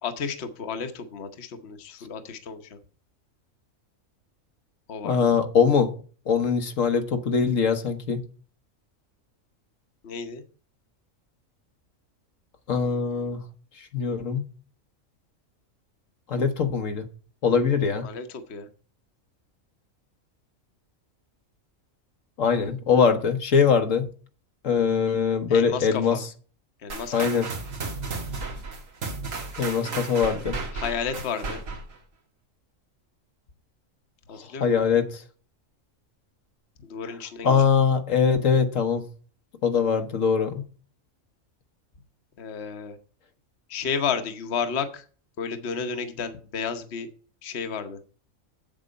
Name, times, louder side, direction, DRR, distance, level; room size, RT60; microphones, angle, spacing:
voice 1, 0.0-2.8 4.9-5.3 10.0-10.4 18.0-18.7 25.5-26.2 26.8-27.3 29.8-30.4 30.7-31.6 34.3-34.7 36.8-37.6 42.4-43.0 43.7-45.0 45.4-47.1 47.4-48.0, left 6 dB, 55° left, 8 dB, 1.2 m, -32 dB
voice 2, 5.0-5.9 6.3-8.2 12.7-13.4 13.8-14.4 16.3-17.1 17.4-18.1 22.4-24.1 24.6-26.2 27.1-27.5 29.6-30.6 34.4-35.2 37.4-39.0 39.6-40.6, left 6 dB, 75° left, 7 dB, 1.4 m, -22 dB
sound 1, 26.9-32.0, right 3 dB, 80° right, 2.0 m, -34 dB
8.1 x 7.5 x 5.1 m, 0.39 s
omnidirectional pair, 1.4 m